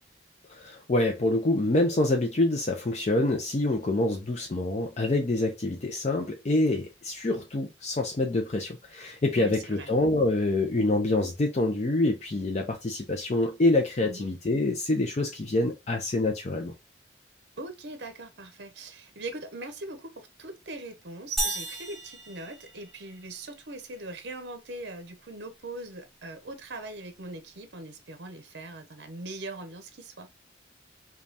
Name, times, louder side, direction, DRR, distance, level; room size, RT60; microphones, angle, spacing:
voice 1, 0.5-16.7, left 2 dB, 35° left, 0.5 m, -26 dB
voice 2, 9.3-9.9 14.0-14.3 17.6-30.3, right 2 dB, 65° right, 0.7 m, -41 dB
sound 1, 21.4-23.3, right 2 dB, ahead, 1.0 m, -34 dB
5.2 x 2.3 x 2.7 m
head